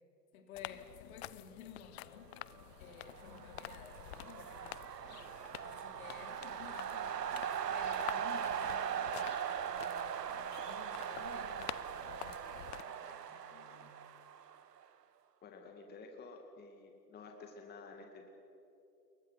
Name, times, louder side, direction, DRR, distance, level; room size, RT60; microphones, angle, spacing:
voice 1, 0.3-5.2 5.6-9.4 9.8-13.9, left 7 dB, 55° left, 4 dB, 3.5 m, -54 dB
sound 1, 0.5-12.8, left 16 dB, 40° left, 0.6 m, -49 dB
sound 2, 2.9-14.8, right 8 dB, 75° right, 1.3 m, -40 dB
voice 2, 15.4-18.3, left 3 dB, 20° left, 3 dB, 2.5 m, -52 dB
28.5 x 23.0 x 5.9 m, 2.8 s
figure-of-eight pair, 110°, 49 cm